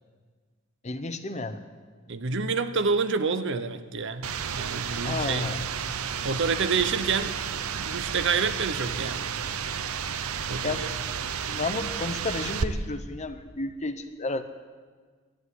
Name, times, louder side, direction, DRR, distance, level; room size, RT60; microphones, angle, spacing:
voice 1, 0.8-1.6 4.9-5.7 10.6-10.9 11.4-14.4, left 3 dB, 35° left, 10 dB, 0.8 m, -32 dB
voice 2, 2.1-4.3 4.5-5.5 6.2-7.4 7.7-9.3 10.5-10.9, right 5 dB, 60° right, 11 dB, 0.8 m, -28 dB
sound 1, 4.2-12.6, right 7 dB, 90° right, 0.7 m, -32 dB
11.5 x 11.0 x 9.7 m, 1.5 s
head